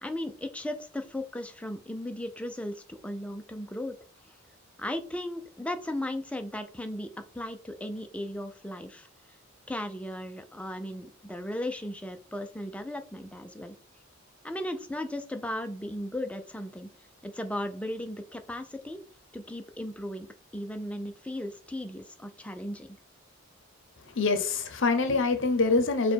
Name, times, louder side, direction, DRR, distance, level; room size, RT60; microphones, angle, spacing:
voice 1, 0.0-4.0 4.3-4.4 4.8-7.1 7.3-9.1 9.7-13.8 14.4-16.9 17.2-19.0 19.3-20.3 20.5-23.0, left 1 dB, 5° left, 0.4 m, -36 dB
voice 2, 24.1-26.1, left 3 dB, 65° left, 0.7 m, -25 dB
4.7 x 2.2 x 4.3 m
head